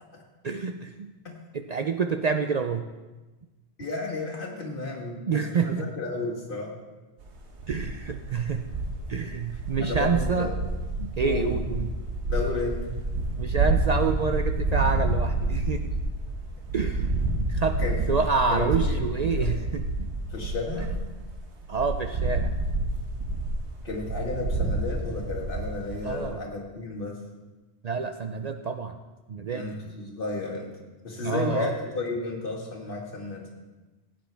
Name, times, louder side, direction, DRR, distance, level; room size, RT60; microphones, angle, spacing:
voice 1, 0.4-1.1 1.5-2.8 5.3-5.9 7.7-8.7 9.1-10.5 11.0-11.9 13.4-15.9 16.7-17.1 17.4-17.8 18.1-20.1 21.7-22.5 26.0-26.4 27.8-29.0 29.3-29.7 31.2-31.7, right 5 dB, 55° right, 6 dB, 0.5 m, -28 dB
voice 2, 3.8-6.8 9.8-10.5 11.2-11.7 12.3-12.9 17.8-18.0 18.5-19.5 20.3-21.0 23.8-27.2 29.5-30.7 31.0-33.4, left 3 dB, 55° left, -1 dB, 2.0 m, -33 dB
sound 1, 7.2-21.3 21.6-26.2, right 2 dB, 85° right, 1.5 m, -29 dB
16.0 x 9.0 x 3.4 m, 1.2 s
omnidirectional pair, 1.1 m